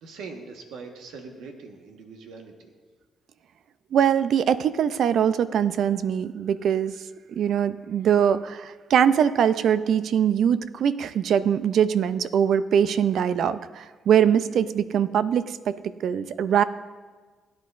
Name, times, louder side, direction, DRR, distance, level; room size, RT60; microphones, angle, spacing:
voice 1, 0.0-2.7, right 4 dB, 85° right, 3 dB, 1.3 m, -42 dB
voice 2, 3.9-7.0 7.3-16.6, right 8 dB, 70° right, 14 dB, 0.4 m, -22 dB
17.0 x 9.6 x 2.5 m, 1.4 s
cardioid pair, 90°, 0 cm